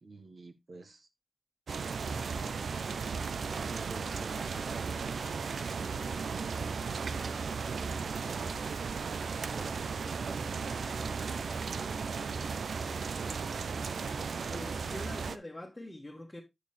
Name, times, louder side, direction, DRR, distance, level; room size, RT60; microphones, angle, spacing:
voice 1, 0.0-1.1 3.3-5.3 5.5-6.3 7.8-8.7 9.5-12.1, right 3 dB, 45° right, 1.5 m, -50 dB
sound 1, 1.7-15.4, right 5 dB, 80° right, 0.6 m, -35 dB
voice 2, 14.5-16.4, left 1 dB, 15° left, 1.7 m, -44 dB
9.2 x 6.7 x 3.3 m
wide cardioid pair, 125°, 0 cm